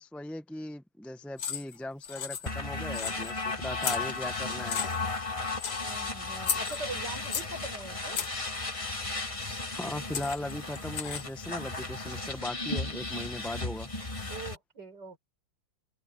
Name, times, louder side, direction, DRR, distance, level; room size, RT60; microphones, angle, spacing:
voice 1, 0.0-4.8 5.1-5.3 9.7-13.9, left 1 dB, ahead, 0.7 m, -38 dB
sound 1, 1.4-1.8 2.0-2.7 2.9-3.4 3.8-4.3 4.7-5.2 5.6-5.9 6.4-7.6 8.1-8.5 9.7-9.8 10.1-11.4, left 7 dB, 60° left, 1.8 m, -34 dB
sound 2, 2.5-14.6, left 3 dB, 20° left, 1.3 m, -35 dB
voice 2, 5.8-8.3 14.3-15.2, right 2 dB, 60° right, 5.1 m, -42 dB
omnidirectional pair, 2.1 m